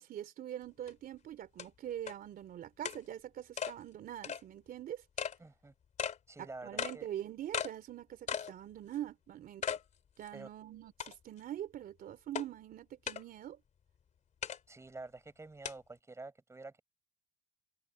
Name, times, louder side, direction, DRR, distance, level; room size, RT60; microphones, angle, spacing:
voice 1, 0.0-5.0 6.4-9.6 10.2-13.6, right 11 dB, 60° right, 3.3 m, -44 dB
sound 1, 0.9-1.0 1.6-1.7 2.1-2.2 2.8-3.0 3.6-3.7 4.2-4.4 5.2-5.4 6.0-6.2 6.8-7.0 7.5-7.7 8.3-8.5 8.9-9.0 9.6-9.8 10.3-10.4 11.0-11.4 12.3-12.5 13.1-13.2 14.4-14.6 15.6-15.7, left 7 dB, 45° left, 3.0 m, -36 dB
voice 2, 5.4-5.7 6.3-7.1 10.3-10.5 14.7-16.8, right 3 dB, 15° right, 7.0 m, -48 dB
cardioid pair, 110°, 17 cm